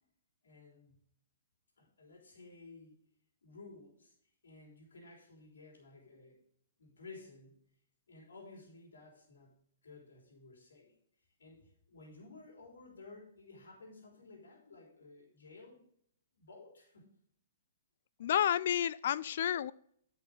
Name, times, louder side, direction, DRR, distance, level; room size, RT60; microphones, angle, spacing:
voice 1, 0.4-1.1 1.8-3.0 3.4-4.2 4.4-6.4 6.8-7.7 8.1-11.0 11.4-15.8 16.3-17.1, left 3 dB, 90° left, -1 dB, 3.6 m, -55 dB
voice 2, 18.2-19.7, left 10 dB, 60° left, 20 dB, 0.4 m, -30 dB
9.6 x 6.2 x 4.9 m, 0.66 s
hypercardioid pair, 135°, 0 cm